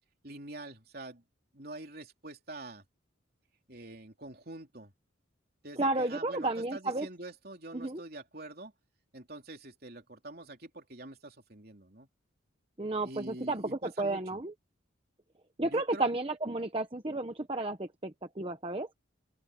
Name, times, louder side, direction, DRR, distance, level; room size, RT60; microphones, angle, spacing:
voice 1, 0.2-1.2 1.5-2.8 3.7-4.9 5.6-8.7 9.1-12.1 13.0-14.4 15.6-16.1, right 2 dB, 50° right, 3.6 m, -46 dB
voice 2, 5.8-7.1 7.7-8.0 12.8-14.5 15.6-19.0, right 2 dB, 25° right, 1.0 m, -32 dB
open air
head